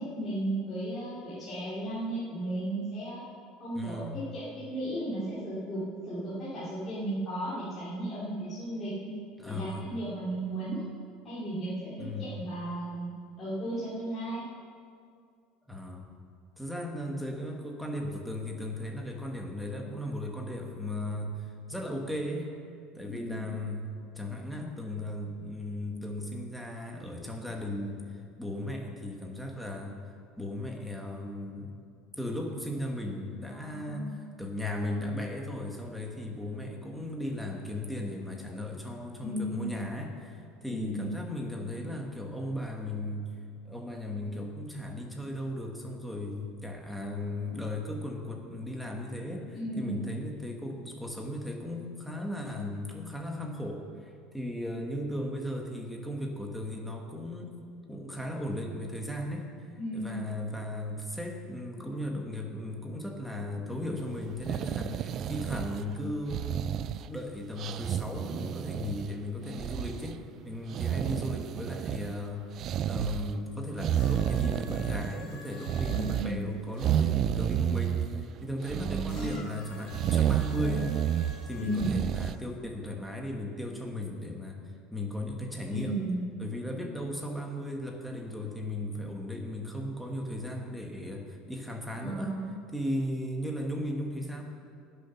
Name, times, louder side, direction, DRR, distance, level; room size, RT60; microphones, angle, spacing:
voice 1, 0.0-3.2 3.6-9.1 9.4-10.8 11.2-13.1 13.4-14.4 23.1-23.6 33.5-34.1 39.2-39.7 40.7-41.0 49.5-50.0 59.8-60.2 75.8-76.5 78.7-79.4 81.5-82.0 85.7-86.2 91.9-92.4, right 1 dB, 20° left, -10 dB, 2.7 m, -35 dB
voice 2, 3.7-4.2 9.4-9.9 12.0-12.3 15.7-16.1 16.6-22.5 22.9-30.0 30.4-31.7 32.2-34.1 34.4-43.3 43.6-57.6 57.9-59.5 59.9-66.6 67.0-70.2 70.4-72.5 72.9-78.1 78.4-80.9 81.5-84.6 84.9-85.9 86.4-92.4 92.7-94.4, left 1 dB, ahead, 0 dB, 1.4 m, -36 dB
sound 1, 64.3-65.9 66.3-67.2 67.6-69.1 69.5-70.1 70.7-72.2 72.6-73.3 73.8-75.3 75.6-76.3 76.8-78.3 78.6-79.4 79.9-81.4 81.8-82.4, right 10 dB, 35° right, 0.3 m, -30 dB
sound 2, 73.9-76.9 79.0-82.3 83.2-83.3, left 2 dB, 45° left, 3.4 m, -49 dB
19.5 x 6.9 x 5.7 m, 2.3 s
cardioid pair, 170°, 0 cm